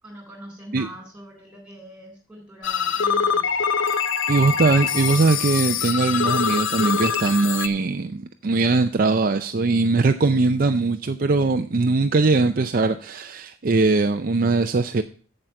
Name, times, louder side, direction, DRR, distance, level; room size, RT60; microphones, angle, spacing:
voice 1, 0.0-3.5, right 1 dB, 5° right, 3.8 m, -42 dB
sound 1, 2.6-7.7, left 7 dB, 65° left, 0.7 m, -24 dB
voice 2, 4.3-15.0, right 3 dB, 40° right, 0.4 m, -21 dB
7.8 x 7.8 x 5.8 m
head